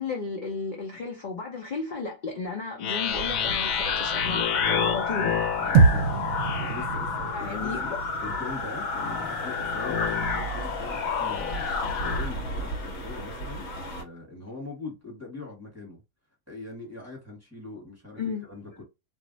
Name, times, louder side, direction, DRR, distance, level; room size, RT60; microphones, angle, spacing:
voice 1, 0.0-5.4 7.3-8.0 18.2-18.4, left 4 dB, 45° left, 0.6 m, -33 dB
sound 1, 2.8-12.3, left 6 dB, 90° left, 1.0 m, -29 dB
sound 2, 3.1-14.0, right 1 dB, 70° left, 1.1 m, -37 dB
voice 2, 5.6-7.9 8.2-11.7 12.1-16.0 16.5-18.8, left 3 dB, 10° right, 1.1 m, -42 dB
sound 3, 5.7-10.1, right 4 dB, 70° right, 0.9 m, -25 dB
2.5 x 2.1 x 3.8 m
omnidirectional pair, 1.4 m